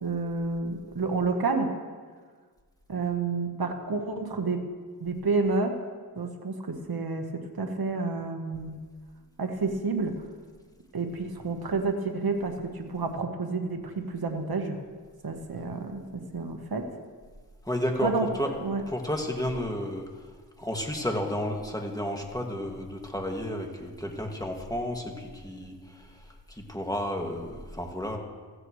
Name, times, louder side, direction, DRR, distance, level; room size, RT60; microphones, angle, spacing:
voice 1, 0.0-1.7 2.9-4.6 5.0-5.8 6.2-8.8 9.4-10.2 10.9-14.8 15.2-16.9 18.0-18.3 18.6-18.8, right 3 dB, 60° right, 4 dB, 1.4 m, -29 dB
voice 2, 17.6-18.5 18.9-20.0 20.6-26.1 26.5-28.2, left 1 dB, 10° left, 1 dB, 2.1 m, -32 dB
15.5 x 14.5 x 3.2 m, 1.6 s
cardioid pair, 40°, 41 cm